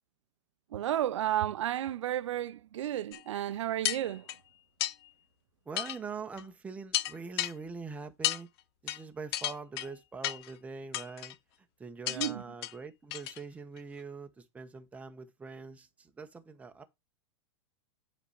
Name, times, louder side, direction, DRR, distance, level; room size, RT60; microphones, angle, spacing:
voice 1, 0.7-4.3 12.1-12.4, right 12 dB, 85° right, 0.6 m, -32 dB
sound 1, 3.1-3.2 3.8-4.4 4.8-4.9 5.8-6.0 6.4-6.5 6.9-7.5 8.2-8.4 8.9-9.0 9.3-9.9 10.2-10.5 10.9-11.3 12.1-12.3 12.6-12.7 13.1-13.4 13.8-13.9, left 14 dB, 55° left, 0.6 m, -33 dB
voice 2, 5.7-8.5 8.8-11.4 11.8-16.8, right 4 dB, 10° right, 1.0 m, -43 dB
8.0 x 4.4 x 4.9 m
supercardioid pair, 145°, 15 cm